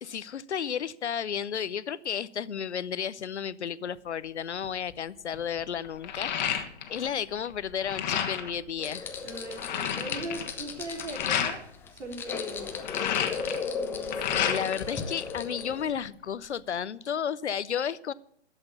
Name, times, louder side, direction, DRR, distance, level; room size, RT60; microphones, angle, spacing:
voice 1, 0.0-9.1 14.3-18.1, left 8 dB, 70° left, 18 dB, 0.8 m, -33 dB
sound 1, 4.6-4.9 5.3-7.1 7.4-8.6 9.1-9.2 9.3-11.6 12.6-14.9 15.2-16.1, left 9 dB, 40° left, 1.5 m, -31 dB
sound 2, 8.8-15.8, left 5 dB, 5° left, 0.5 m, -36 dB
voice 2, 9.2-11.6 11.9-12.8 13.7-14.6, right 2 dB, 80° right, 4 dB, 3.3 m, -40 dB
11.5 x 7.8 x 6.7 m, 0.70 s
figure-of-eight pair, 130°, 35 cm